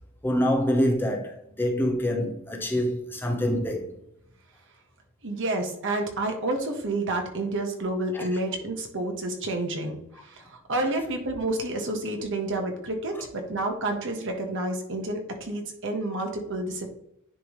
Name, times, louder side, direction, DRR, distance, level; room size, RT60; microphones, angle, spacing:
voice 1, 0.2-3.9 8.1-8.3, equal, 10° left, 0.9 m, -26 dB
voice 2, 5.2-10.0 10.2-16.9, right 2 dB, 65° right, 1.3 m, -29 dB
10.0 x 3.5 x 3.1 m
head